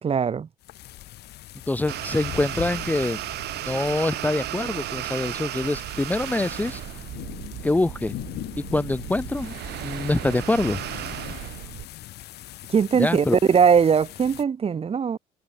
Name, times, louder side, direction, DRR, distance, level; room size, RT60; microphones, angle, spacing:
voice 1, 0.0-0.5 12.7-15.2, right 6 dB, 35° right, 1.9 m, -20 dB
sound 1, 0.6-14.4, left 15 dB, 75° left, 2.8 m, -41 dB
voice 2, 1.7-3.2 3.7-6.8 7.6-8.1 8.6-9.5 9.8-10.8 13.0-13.4, left 2 dB, 10° left, 0.7 m, -25 dB
sound 2, 1.9-11.9, right 15 dB, 75° right, 7.6 m, -34 dB
cardioid pair, 110°, 17 cm